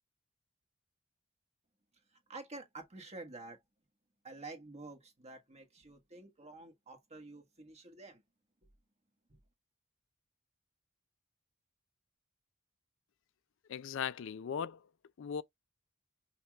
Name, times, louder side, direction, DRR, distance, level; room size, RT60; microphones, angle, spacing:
voice 1, 2.3-3.6 4.2-8.2, right 2 dB, 30° right, 1.4 m, -49 dB
voice 2, 13.7-14.8 15.2-15.4, left 7 dB, 65° left, 0.4 m, -38 dB
5.7 x 2.3 x 2.9 m
head